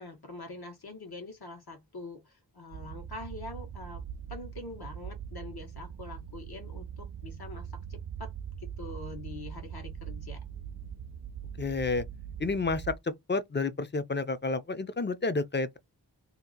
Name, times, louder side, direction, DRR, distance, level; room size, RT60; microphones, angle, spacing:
voice 1, 0.0-4.0 4.3-8.3 8.6-10.4, left 2 dB, 65° left, 1.3 m, -44 dB
sound 1, 2.7-13.0, right 8 dB, 55° right, 0.5 m, -41 dB
voice 2, 11.6-12.0 12.4-12.9 13.3-15.8, left 3 dB, 25° left, 0.5 m, -30 dB
2.8 x 2.4 x 3.7 m
wide cardioid pair, 65°, 41 cm